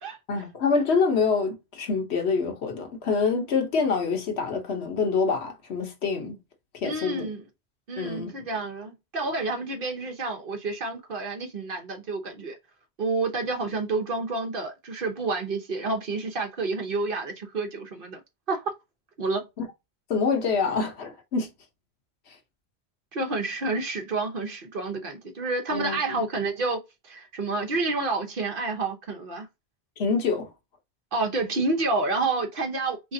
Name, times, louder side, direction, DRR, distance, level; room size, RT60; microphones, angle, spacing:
voice 1, 0.3-6.4 6.7-7.3 8.0-8.3 19.6-19.7 20.1-21.5 25.7-26.2 30.0-30.5, left 5 dB, 85° left, 1.2 m, -26 dB
voice 2, 6.8-7.4 7.9-12.6 13.0-18.2 18.5-18.6 19.2-19.5 23.1-29.5 31.1-33.1, right 3 dB, 60° right, 1.1 m, -29 dB
3.9 x 3.2 x 2.7 m
omnidirectional pair, 1.1 m